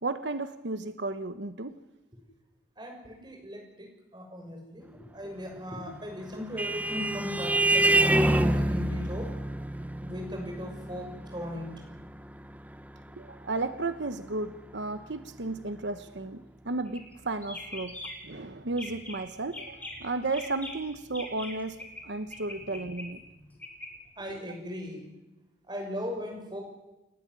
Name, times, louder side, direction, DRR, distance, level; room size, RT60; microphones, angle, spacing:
voice 1, 0.0-1.8 13.2-18.0 18.2-21.8 22.0-23.2, right 2 dB, 90° right, 11 dB, 1.1 m, -33 dB
voice 2, 2.8-9.3 10.0-11.7 24.2-25.1 25.7-26.6, equal, 25° right, 1 dB, 6.3 m, -38 dB
Vehicle horn car horn honking, 6.0-14.9, right 2 dB, 10° right, 0.8 m, -28 dB
sound 1, 16.9-17.1 17.4-18.3 18.7-19.2 19.5-22.0 22.3-23.9, left 1 dB, 10° left, 4.4 m, -42 dB
29.5 x 12.5 x 9.8 m, 1.0 s
head